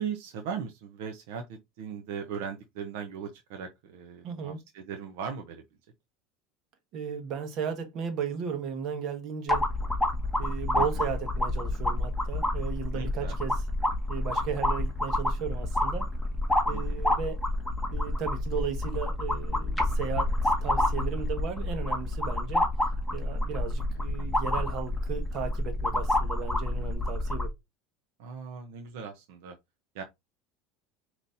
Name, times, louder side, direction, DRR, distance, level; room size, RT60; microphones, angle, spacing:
voice 1, 0.0-5.6 10.7-11.0 12.9-13.3 16.7-17.0 28.2-29.6 29.9-30.0, right 7 dB, 80° right, 0.7 m, -38 dB
voice 2, 4.2-4.6 6.9-9.7 10.4-13.6 14.1-16.1 16.7-17.4 17.9-22.7 23.1-27.5, right 6 dB, 50° right, 1.3 m, -35 dB
sound 1, 9.5-27.5, left 1 dB, ahead, 1.3 m, -28 dB
5.3 x 3.0 x 2.6 m
supercardioid pair, 130°, 0 cm